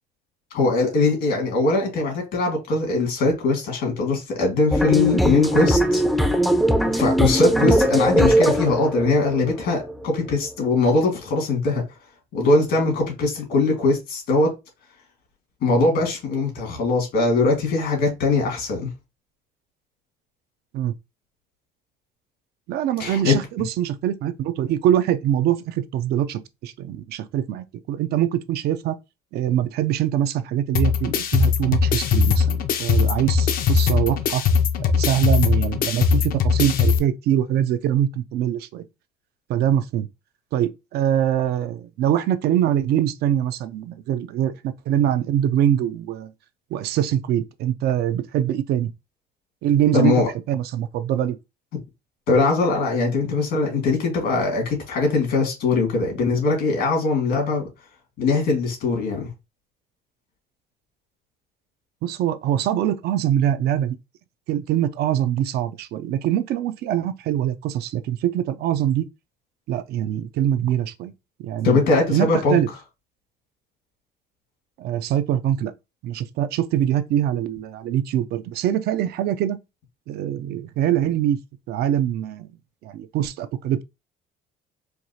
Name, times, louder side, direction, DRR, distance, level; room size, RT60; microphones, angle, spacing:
voice 1, 0.5-6.0 6.9-11.8 12.3-14.5 15.6-18.9 23.0-23.4 49.9-50.3 52.3-57.7 58.2-59.3 71.6-72.6, left 3 dB, 75° left, 2.0 m, -21 dB
sound 1, 4.7-10.5, right 1 dB, ahead, 0.4 m, -20 dB
voice 2, 22.7-29.0 29.3-34.4 34.8-38.8 39.5-40.1 40.5-46.3 46.7-48.9 49.6-50.1 50.5-51.4 62.0-64.0 64.5-69.1 69.7-71.1 71.4-71.8 72.1-72.7 74.8-75.7 76.0-79.6 80.1-81.4 81.7-82.5 82.8-83.8, right 11 dB, 70° right, 0.4 m, -23 dB
sound 2, 30.7-37.0, left 6 dB, 60° left, 0.6 m, -20 dB
4.5 x 2.3 x 2.7 m
cardioid pair, 110°, 17 cm